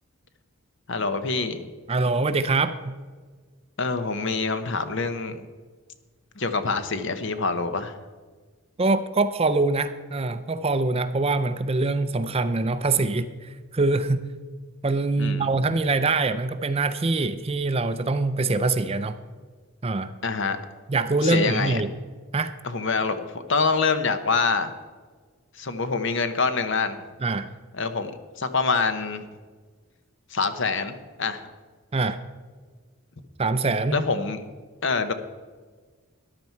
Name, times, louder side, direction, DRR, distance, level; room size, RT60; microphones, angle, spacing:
voice 1, 0.9-1.7 3.8-5.4 6.4-7.9 15.2-15.5 20.2-20.6 21.2-21.8 22.6-24.7 25.6-27.0 27.8-28.1 28.4-29.3 30.3-31.5 33.9-34.4 34.8-35.1, left 4 dB, 55° left, 10 dB, 0.8 m, -25 dB
voice 2, 1.9-2.9 8.8-14.3 14.8-19.2 19.8-20.1 20.9-21.9 22.3-22.5 27.2-27.5 31.9-32.2 33.4-34.0, right 3 dB, 25° right, 12 dB, 0.4 m, -24 dB
14.0 x 11.0 x 4.5 m, 1.5 s
head